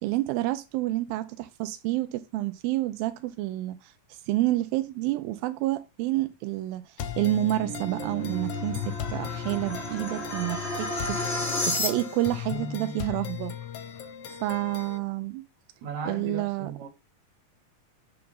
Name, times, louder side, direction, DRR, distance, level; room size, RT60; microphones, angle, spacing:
voice 1, 0.0-13.6 13.9-14.0 14.3-15.4 16.1-16.7, right 16 dB, 85° right, 2.4 m, -29 dB
sound 1, 7.0-15.0, left 9 dB, 85° left, 1.3 m, -37 dB
sound 2, 7.2-12.4, left 2 dB, 45° left, 0.8 m, -32 dB
voice 2, 15.8-16.9, right 3 dB, 60° right, 2.6 m, -36 dB
7.7 x 5.8 x 3.9 m
omnidirectional pair, 4.1 m